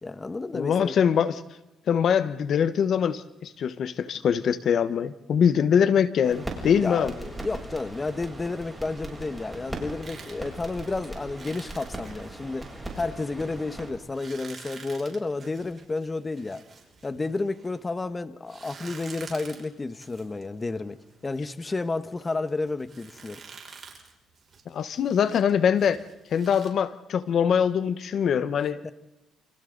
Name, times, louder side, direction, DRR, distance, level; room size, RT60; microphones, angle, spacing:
voice 1, 0.0-0.9 6.6-12.6 12.9-16.6 17.0-21.0 21.2-23.4 28.8-28.9, left 3 dB, 25° left, 1.3 m, -31 dB
voice 2, 0.5-1.4 1.9-7.1 24.7-26.0 26.3-28.9, left 7 dB, 65° left, 1.1 m, -23 dB
sound 1, 6.2-13.9, right 1 dB, 10° right, 7.8 m, -39 dB
sound 2, 10.0-17.9 18.4-26.7, right 5 dB, 40° right, 6.1 m, -49 dB
29.5 x 29.0 x 4.0 m
cardioid pair, 90°, 0 cm